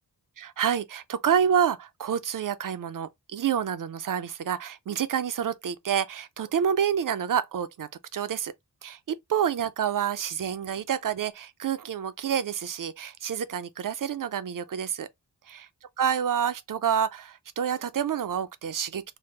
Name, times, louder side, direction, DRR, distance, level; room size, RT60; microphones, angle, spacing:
voice 1, 0.4-8.5 8.8-15.1 15.5-15.7 16.0-19.2, right 8 dB, 55° right, 0.5 m, -28 dB
3.4 x 2.0 x 3.1 m
wide cardioid pair, 90°, 40 cm